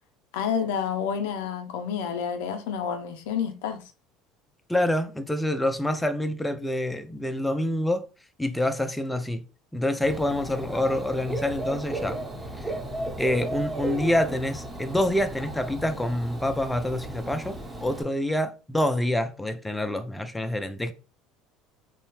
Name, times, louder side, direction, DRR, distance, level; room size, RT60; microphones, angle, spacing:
voice 1, 0.3-3.8, left 7 dB, 80° left, 0.4 m, -29 dB
voice 2, 4.7-8.1 8.4-9.4 9.7-12.2 12.6-12.7 13.2-20.9, left 1 dB, 5° left, 0.4 m, -27 dB
Dog / Bird, 10.0-18.0, right 2 dB, 20° right, 0.9 m, -35 dB
2.7 x 2.1 x 3.0 m
supercardioid pair, 85°, 0 cm